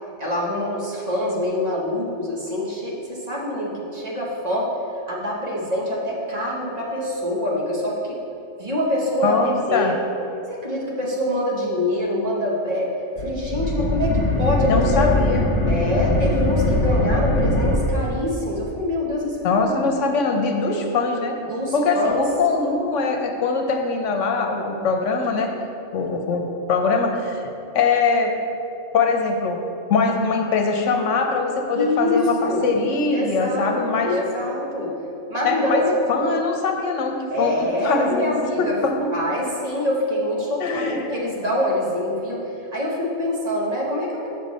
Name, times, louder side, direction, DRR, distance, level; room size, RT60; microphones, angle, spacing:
voice 1, 0.2-4.7 5.1-8.2 8.6-10.0 10.5-15.1 15.6-19.7 21.5-22.2 31.8-32.8 33.1-34.9 35.3-36.0 37.3-38.8 39.1-44.3, left 1 dB, 35° right, -4 dB, 1.1 m, -25 dB
voice 2, 9.2-9.9 14.7-15.5 19.4-21.4 21.7-25.5 25.9-27.4 27.7-28.3 28.9-29.6 29.9-34.1 35.4-39.1 40.6-41.0, left 4 dB, 75° left, 3 dB, 1.1 m, -22 dB
sound 1, 13.2-17.8, left 1 dB, 55° left, 1.3 m, -21 dB
6.7 x 6.5 x 4.1 m, 2.8 s
omnidirectional pair, 1.3 m